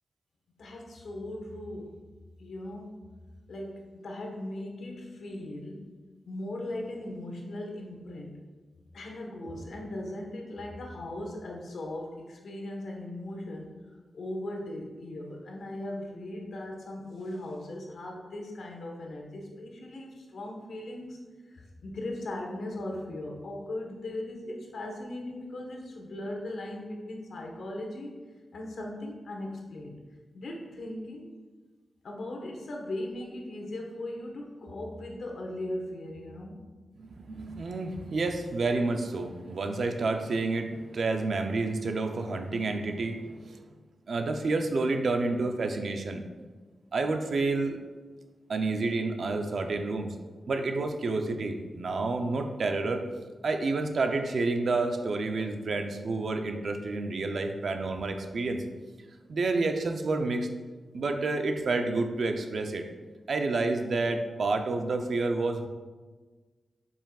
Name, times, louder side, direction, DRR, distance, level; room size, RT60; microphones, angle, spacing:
voice 1, 0.6-2.0 2.4-3.0 3.5-5.9 6.3-8.4 8.9-13.7 14.1-21.2 21.5-28.1 28.5-29.9 30.3-31.3 32.0-36.6, left 1 dB, 75° left, 0 dB, 1.2 m, -38 dB
voice 2, 37.0-43.6 44.1-46.2 46.9-47.8 48.5-50.1 50.5-53.1 53.4-58.6 59.3-60.5 60.9-62.9 63.3-65.7, right 3 dB, 65° right, 5 dB, 0.6 m, -29 dB
7.3 x 5.6 x 2.4 m, 1.3 s
wide cardioid pair, 105°, 0 cm